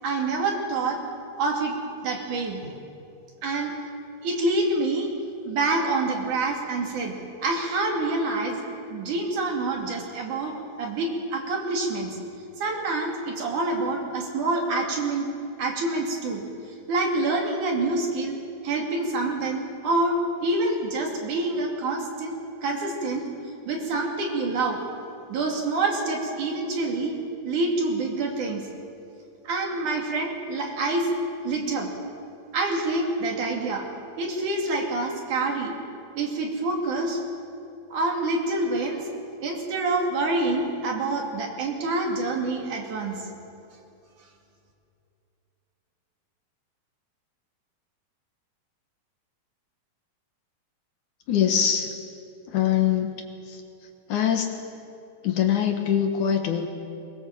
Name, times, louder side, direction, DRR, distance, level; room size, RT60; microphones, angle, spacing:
voice 1, 0.0-1.0 1.4-2.7 3.4-3.7 4.2-5.1 5.4-8.6 8.9-12.2 12.6-15.3 15.6-16.4 16.9-18.4 18.6-23.3 23.7-24.8 25.3-27.2 27.4-28.7 29.5-31.1 31.4-31.9 32.5-33.9 34.2-35.8 36.2-37.2 37.9-39.1 39.4-43.3, right 2 dB, 60° right, 1 dB, 3.9 m, -27 dB
voice 2, 51.3-51.9 52.5-53.1 54.1-54.5 55.2-56.7, left 9 dB, 65° left, 4 dB, 2.6 m, -22 dB
22.5 x 21.5 x 7.6 m, 2.7 s
omnidirectional pair, 4.2 m